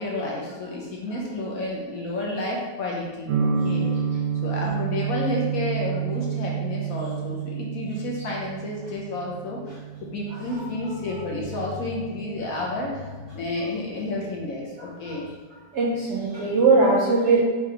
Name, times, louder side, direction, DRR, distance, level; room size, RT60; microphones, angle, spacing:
voice 1, 0.0-4.0 4.4-15.3, left 2 dB, 60° left, -2 dB, 1.0 m, -31 dB
sound 1, 3.3-13.1, right 7 dB, 65° right, 1.0 m, -30 dB
voice 2, 15.7-17.4, right 3 dB, 85° right, -3 dB, 0.6 m, -20 dB
4.7 x 3.5 x 3.2 m, 1.4 s
omnidirectional pair, 2.0 m